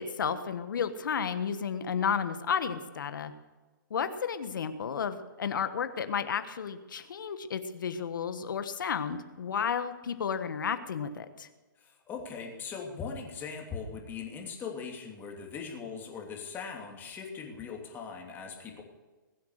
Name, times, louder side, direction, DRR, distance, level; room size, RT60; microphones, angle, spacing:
voice 1, 0.0-3.3 3.9-11.5, left 7 dB, 70° left, 10 dB, 1.4 m, -32 dB
voice 2, 11.8-18.8, left 5 dB, 20° left, 1 dB, 2.8 m, -40 dB
21.5 x 8.2 x 6.6 m, 1.2 s
hypercardioid pair, 145°, 11 cm